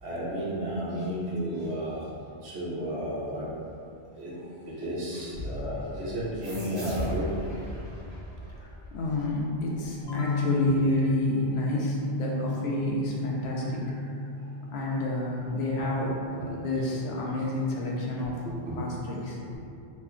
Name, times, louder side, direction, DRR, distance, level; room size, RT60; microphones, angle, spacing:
voice 1, 0.0-2.1 2.4-3.5 4.1-4.4 4.7-7.3 14.8-15.0 15.8-15.9 16.4-16.6 18.4-18.8 19.5-19.6, equal, 85° right, -7 dB, 1.1 m, -33 dB
sound 1, 6.4-9.6, equal, 30° right, 0.8 m, -38 dB
voice 2, 8.6-13.8 14.7-18.4 18.7-19.4, left 2 dB, 80° left, -3 dB, 0.9 m, -29 dB
Bass guitar, 10.0-16.3, left 3 dB, 15° left, 0.6 m, -33 dB
3.3 x 2.2 x 3.6 m, 2.6 s
omnidirectional pair, 1.1 m